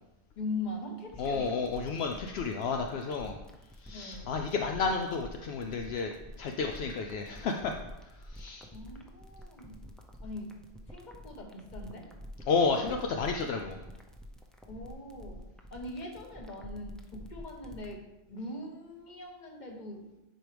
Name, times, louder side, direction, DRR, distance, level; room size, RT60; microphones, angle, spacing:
voice 1, 0.4-1.5 3.9-4.4 8.7-9.9 10.2-10.6 10.9-12.1 13.3-13.6 14.7-15.4 15.7-18.0 18.3-20.1, left 2 dB, 45° left, 1 dB, 1.3 m, -41 dB
sound 1, 1.1-17.9, equal, ahead, 0.5 m, -48 dB
voice 2, 1.2-3.4 3.8-6.1 6.4-7.7 8.3-8.7 12.5-13.8, left 4 dB, 75° left, 3 dB, 0.8 m, -31 dB
10.5 x 4.6 x 3.3 m, 0.98 s
omnidirectional pair, 1.1 m